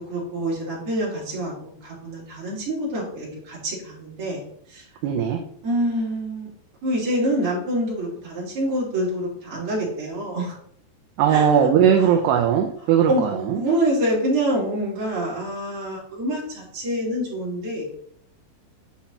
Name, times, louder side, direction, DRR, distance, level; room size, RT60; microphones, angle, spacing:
voice 1, 0.1-4.4 4.7-4.8 5.6-6.5 6.8-10.5 11.3-11.5 13.1-17.9, right 1 dB, 30° right, -6 dB, 3.6 m, -26 dB
voice 2, 5.0-5.4 11.2-13.6, right 8 dB, 80° right, 3 dB, 2.6 m, -19 dB
10.0 x 5.7 x 2.9 m, 0.66 s
omnidirectional pair, 5.1 m